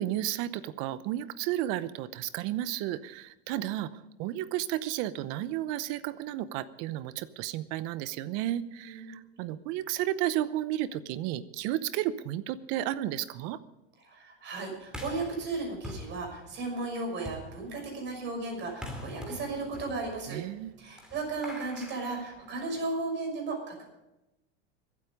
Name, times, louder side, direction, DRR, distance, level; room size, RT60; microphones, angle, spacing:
voice 1, 0.0-13.6 20.3-20.8, right 13 dB, 55° right, 16 dB, 0.8 m, -33 dB
voice 2, 14.0-20.4 20.8-23.8, right 3 dB, 40° right, 1 dB, 6.0 m, -35 dB
sound 1, 14.9-23.0, left 1 dB, 5° right, 2.7 m, -45 dB
23.5 x 8.5 x 5.2 m, 0.92 s
supercardioid pair, 130°, 30 cm